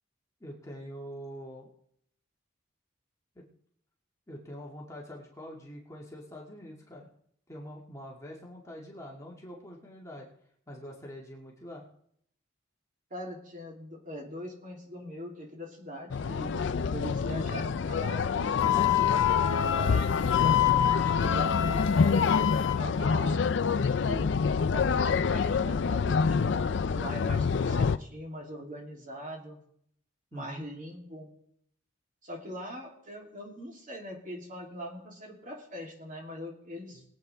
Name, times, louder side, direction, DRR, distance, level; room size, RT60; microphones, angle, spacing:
voice 1, 0.4-1.7 3.4-3.5 4.3-7.1 7.5-10.3 10.7-11.9 27.1-27.2 30.3-30.6 36.9-37.0, equal, 15° left, -2 dB, 2.0 m, -44 dB
voice 2, 13.1-23.5 23.9-24.3 24.7-29.6 30.3-31.3 32.2-37.0, equal, 40° right, -1 dB, 3.0 m, -42 dB
sound 1, 16.1-28.0, left 5 dB, 60° left, 0.4 m, -27 dB
Wind instrument woodwind instrument, 18.6-22.8, left 12 dB, 75° left, 0.9 m, -27 dB
21.5 x 8.5 x 3.4 m, 0.69 s
head